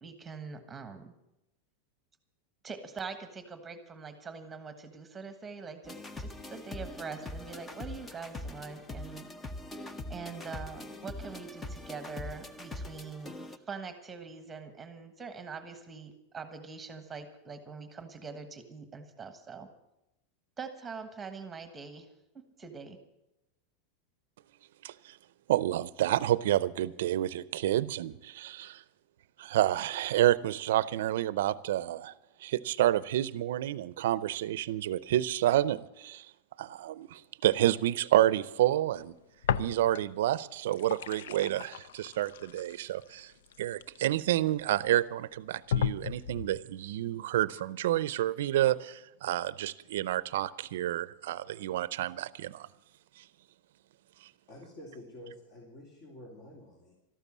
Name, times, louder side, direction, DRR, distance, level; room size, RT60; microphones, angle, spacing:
voice 1, 0.0-1.1 2.6-9.3 10.1-13.3 13.7-19.7 20.6-22.1 22.6-23.0, right 5 dB, 15° right, 9 dB, 1.3 m, -43 dB
sound 1, 5.8-13.6, left 1 dB, 10° left, 0.7 m, -42 dB
voice 2, 24.8-25.2 25.5-28.8 29.4-32.1 32.4-36.3 36.6-39.1 39.6-43.3 43.6-52.7 53.2-53.3, right 13 dB, 75° right, 18 dB, 0.5 m, -29 dB
sound 2, 39.4-40.2 40.5-44.5 45.1-45.2 45.7-46.6, left 8 dB, 90° left, 0.5 m, -34 dB
voice 3, 54.5-56.9, left 1 dB, 45° left, 0 dB, 3.0 m, -49 dB
13.0 x 12.5 x 7.3 m, 0.89 s
supercardioid pair, 155°, 0 cm